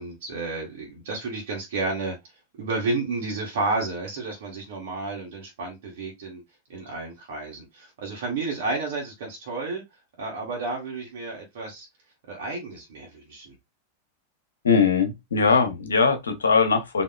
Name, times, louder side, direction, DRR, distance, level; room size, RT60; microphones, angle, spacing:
voice 1, 0.0-2.2 2.6-6.4 6.7-9.8 10.2-11.9 12.3-13.5, right 3 dB, 55° right, 1.2 m, -31 dB
voice 2, 14.6-17.0, left 5 dB, 70° left, 0.9 m, -21 dB
4.0 x 2.7 x 2.3 m
figure-of-eight pair, 90°, 0 cm